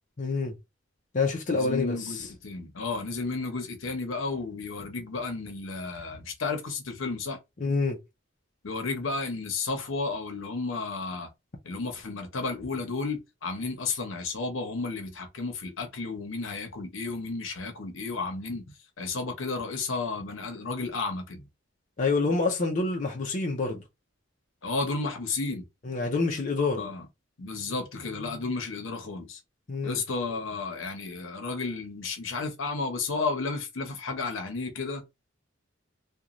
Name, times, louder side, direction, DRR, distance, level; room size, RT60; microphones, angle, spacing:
voice 1, 0.2-0.6 1.1-2.3 7.6-8.0 22.0-23.8 25.8-26.9 29.7-30.0, left 3 dB, 40° left, 0.6 m, -27 dB
voice 2, 1.5-7.4 8.6-11.3 11.6-18.6 19.0-21.5 24.6-25.7 26.8-27.0 27.4-29.4 29.8-35.0, left 3 dB, 80° left, 0.8 m, -32 dB
3.0 x 2.3 x 2.5 m
head